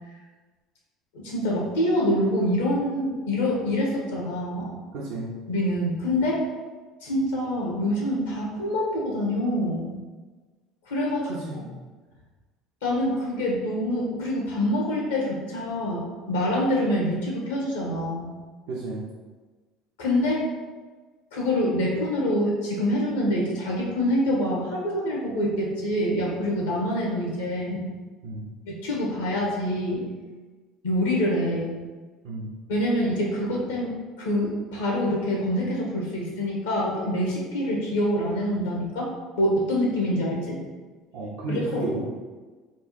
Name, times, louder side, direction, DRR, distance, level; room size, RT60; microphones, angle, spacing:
voice 1, 1.1-4.7 5.5-6.4 7.0-10.0 10.9-11.3 12.8-18.3 20.0-20.4 21.3-27.9 28.7-30.0 30.8-31.7 32.7-39.1 39.4-40.6 41.5-41.8, left 1 dB, 90° left, -3 dB, 1.2 m, -26 dB
voice 2, 4.9-5.3 11.3-11.7 18.7-19.0 28.2-28.5 32.2-32.5 41.1-42.0, right 3 dB, 75° right, -6 dB, 0.7 m, -32 dB
3.5 x 2.4 x 4.2 m, 1.3 s
hypercardioid pair, 75°, 0 cm